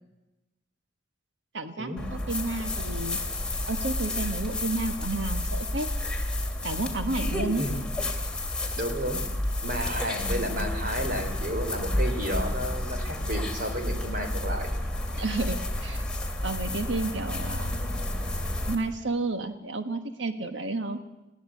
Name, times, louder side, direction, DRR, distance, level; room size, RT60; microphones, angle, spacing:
voice 1, 1.5-3.2 3.7-5.9 6.6-7.6 15.2-16.0 16.4-17.8 18.7-21.0, right 2 dB, 75° right, 8 dB, 1.3 m, -31 dB
sound 1, 2.0-18.8, left 1 dB, 5° left, 2.7 m, -30 dB
voice 2, 8.8-9.2 9.6-14.7, equal, 50° right, 5 dB, 3.5 m, -32 dB
21.0 x 17.0 x 8.4 m, 1.0 s
head